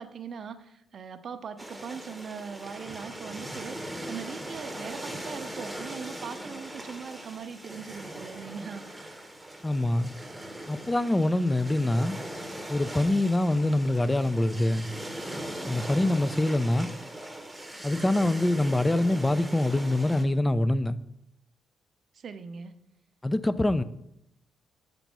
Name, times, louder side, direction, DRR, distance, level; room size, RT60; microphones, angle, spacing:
voice 1, 0.0-9.2 22.1-22.7, right 6 dB, 55° right, 0.6 m, -40 dB
sound 1, 1.6-20.2, right 1 dB, 5° right, 0.9 m, -40 dB
voice 2, 9.6-10.1 10.7-12.2 12.7-14.9 15.7-16.9 17.8-21.0 23.2-23.8, left 1 dB, 15° left, 0.4 m, -25 dB
5.2 x 4.5 x 6.0 m
cardioid pair, 90°, 0 cm